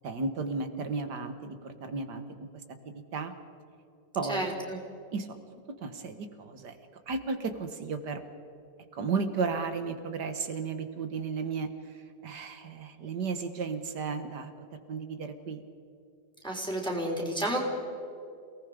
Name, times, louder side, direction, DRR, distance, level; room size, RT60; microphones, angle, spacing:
voice 1, 0.0-2.2 3.1-3.3 4.1-4.4 5.1-5.4 5.8-6.8 7.1-8.2 8.9-14.5 14.9-15.6, right 4 dB, 65° right, 9 dB, 2.0 m, -34 dB
voice 2, 4.3-4.8 16.4-17.6, right 1 dB, ahead, -1 dB, 4.0 m, -31 dB
29.0 x 18.5 x 5.2 m, 2.6 s
omnidirectional pair, 2.0 m